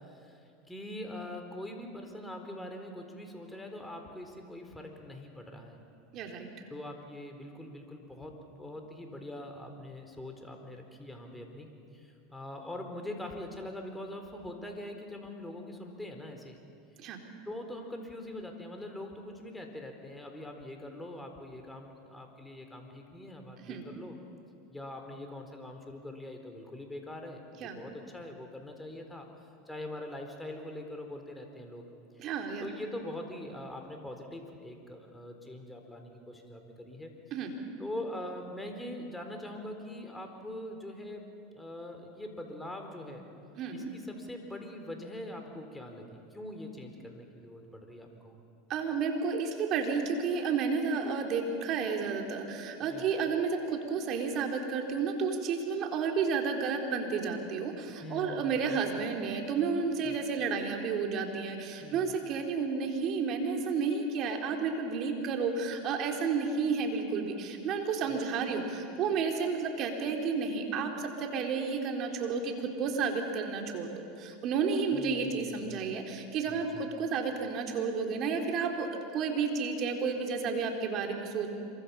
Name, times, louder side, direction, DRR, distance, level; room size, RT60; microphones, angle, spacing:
voice 1, 0.0-5.8 6.7-16.6 17.5-24.2 24.7-29.3 29.7-31.8 32.2-32.3 32.6-37.1 37.8-41.3 41.5-43.3 43.7-48.4 52.9-53.1 58.0-59.1 60.0-60.2 61.8-62.1 74.9-75.9 76.5-76.8, left 1 dB, 5° left, 4 dB, 4.2 m, -43 dB
voice 2, 6.1-6.5 17.0-17.2 23.6-23.8 27.6-27.8 32.2-32.6 37.3-37.5 43.6-43.9 48.7-81.5, right 5 dB, 45° right, 3 dB, 4.2 m, -31 dB
26.5 x 24.5 x 7.2 m, 2.8 s
hypercardioid pair, 105°, 0 cm